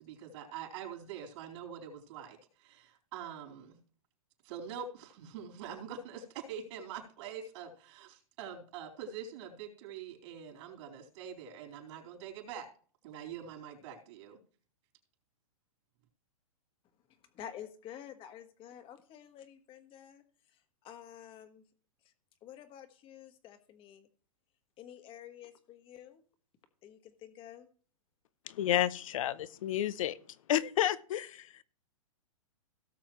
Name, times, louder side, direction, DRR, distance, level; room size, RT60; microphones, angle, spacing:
voice 1, 0.0-3.8 4.4-12.7 13.0-14.4, right 7 dB, 55° right, 4.0 m, -44 dB
voice 2, 17.1-20.2 20.5-21.6 22.0-22.1 22.4-24.1 24.8-26.2 26.8-27.7, left 10 dB, 30° left, 1.5 m, -50 dB
voice 3, 28.5-30.2 30.5-31.6, left 11 dB, 70° left, 0.8 m, -31 dB
17.5 x 6.9 x 3.1 m
hypercardioid pair, 135°, 18 cm